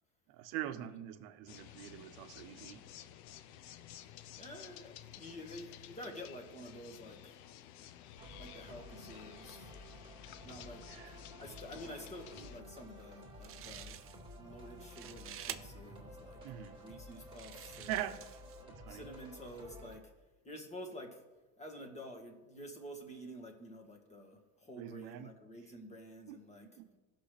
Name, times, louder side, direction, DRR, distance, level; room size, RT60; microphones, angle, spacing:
voice 1, 0.3-2.9 10.9-11.2 16.4-16.8 17.9-18.3 18.7-19.0 24.8-25.3 26.3-26.9, right 12 dB, 70° right, 0.9 m, -43 dB
sound 1, 1.5-12.6, left 11 dB, 75° left, 0.7 m, -53 dB
voice 2, 4.4-7.4 8.4-9.7 10.4-14.0 14.3-16.4 16.8-17.9 18.9-20.1 20.4-21.2 21.6-26.7, equal, 15° left, 1.7 m, -49 dB
sound 2, 8.2-20.0, equal, 10° right, 2.1 m, -52 dB
sound 3, 13.1-13.2 13.4-14.4 14.7-15.6 16.3-16.4 17.1-18.6, right 11 dB, 30° right, 0.5 m, -48 dB
16.0 x 6.1 x 3.4 m
supercardioid pair, 130°, 42 cm